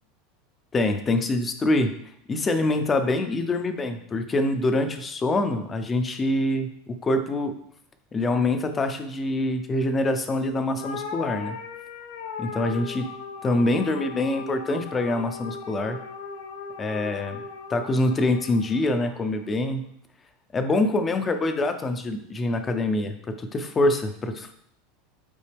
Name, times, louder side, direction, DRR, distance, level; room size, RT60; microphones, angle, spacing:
voice 1, 0.7-1.9 2.3-7.5 8.1-11.6 12.4-13.1 13.4-16.0 16.8-17.4 17.7-19.8 20.5-24.5, left 2 dB, 20° left, 7 dB, 0.6 m, -25 dB
sound 1, 10.8-19.3, left 5 dB, 90° left, 1.0 m, -38 dB
8.5 x 4.1 x 3.5 m, 0.70 s
supercardioid pair, 140°, 0 cm